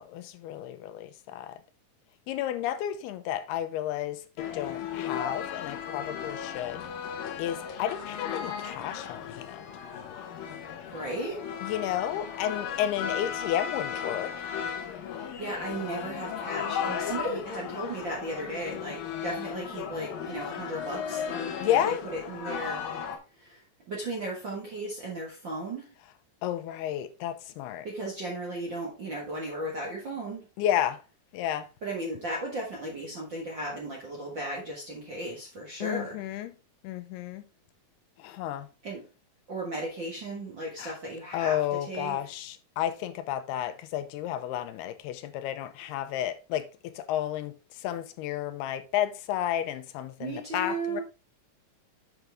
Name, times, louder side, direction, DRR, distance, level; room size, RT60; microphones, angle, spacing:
voice 1, 0.0-1.6 2.3-4.2 4.5-6.9 7.4-9.6 11.6-14.3 21.6-22.0 26.4-27.9 30.6-31.0 31.3-31.7 35.8-36.5 36.8-37.4 38.2-38.7 40.8-41.0 41.3-51.0, left 11 dB, 90° left, 2.7 m, -32 dB
sound 1, 4.4-23.2, left 8 dB, 70° left, 2.7 m, -36 dB
voice 2, 10.9-11.4 15.1-22.9 23.4-25.9 27.8-30.4 31.8-36.2 38.8-39.0 39.5-41.6 41.9-42.2 50.2-51.0, right 1 dB, 50° right, 1.4 m, -35 dB
8.0 x 5.9 x 3.5 m
omnidirectional pair, 4.5 m